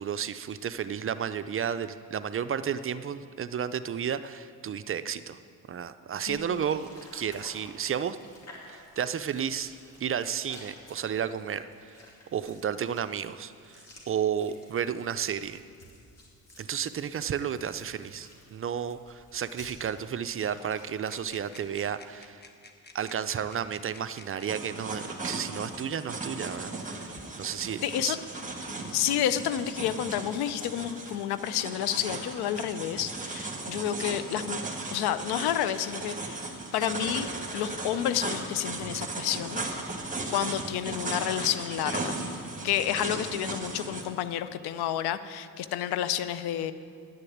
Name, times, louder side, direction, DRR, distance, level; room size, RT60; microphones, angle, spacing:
voice 1, 0.0-5.4 5.7-8.2 8.7-12.0 12.3-15.6 16.6-22.4 22.9-28.2, right 8 dB, 35° right, 12 dB, 0.5 m, -32 dB
voice 2, 6.3-6.7 27.8-28.2 28.9-34.6 34.9-39.6 40.3-42.2 42.6-46.7, left 11 dB, 85° left, 13 dB, 0.6 m, -30 dB
sound 1, 6.3-22.3, left 1 dB, 40° left, 2.8 m, -53 dB
sound 2, 21.1-24.7 25.7-25.8 26.5-27.3, left 3 dB, 25° left, 1.1 m, -53 dB
sound 3, 24.5-44.0, right 2 dB, 20° right, 1.8 m, -37 dB
10.0 x 6.7 x 8.6 m, 2.2 s
cardioid pair, 85°, 38 cm